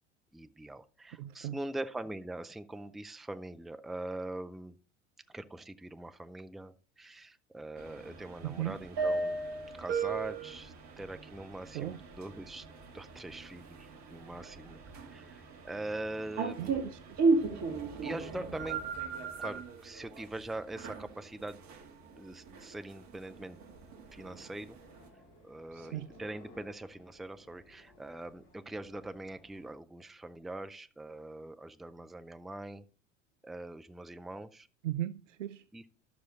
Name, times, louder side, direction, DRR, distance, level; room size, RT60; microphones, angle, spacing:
voice 1, 0.3-4.8 5.3-9.4 9.8-12.7 12.9-16.8 18.0-18.8 19.4-21.6 22.1-23.6 24.1-24.8 25.4-32.8 33.4-34.7 35.7-35.9, right 2 dB, ahead, 0.5 m, -42 dB
voice 2, 1.2-1.6 8.4-8.8 11.7-12.0 16.6-17.2 25.7-26.1 34.8-35.6, right 13 dB, 70° right, 0.6 m, -37 dB
sound 1, 7.8-25.1, right 4 dB, 45° right, 1.8 m, -36 dB
sound 2, 23.3-29.7, left 1 dB, 65° left, 5.1 m, -59 dB
12.5 x 6.3 x 4.0 m
figure-of-eight pair, 75°, 38 cm